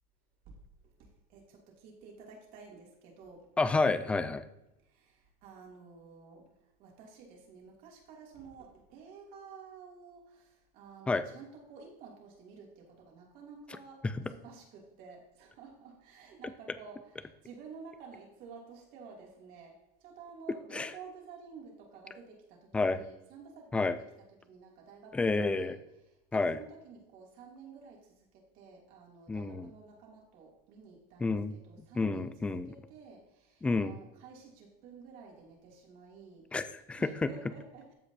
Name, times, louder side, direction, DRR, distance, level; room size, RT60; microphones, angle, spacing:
voice 1, 1.0-3.5 4.8-6.5 6.8-24.1 24.4-25.8 26.1-36.5 37.0-37.9, right 5 dB, 45° right, -1 dB, 2.9 m, -52 dB
voice 2, 3.6-4.4 11.1-11.2 14.0-14.1 20.7-20.9 22.7-23.0 23.7-24.0 25.1-25.8 26.3-26.6 29.3-29.7 31.2-31.6 32.0-32.7 33.6-33.9 36.5-37.3, left 3 dB, 5° left, 12 dB, 0.3 m, -29 dB
14.5 x 5.1 x 2.8 m, 0.90 s
supercardioid pair, 160°, 19 cm